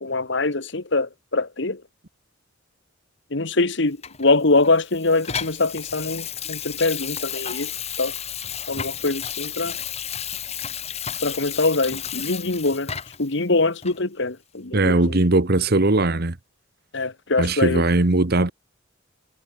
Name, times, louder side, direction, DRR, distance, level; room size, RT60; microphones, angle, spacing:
voice 1, 0.0-1.8 3.3-7.7 8.0-8.1 8.7-9.8 11.2-12.9 13.2-15.2 16.9-17.8, left 3 dB, 65° left, 1.7 m, -23 dB
Water tap faucet / Sink (filling or washing), 4.0-13.3 13.8-14.0, left 8 dB, 35° left, 1.5 m, -32 dB
voice 2, 14.7-16.4 17.4-18.5, right 2 dB, 55° right, 1.4 m, -19 dB
head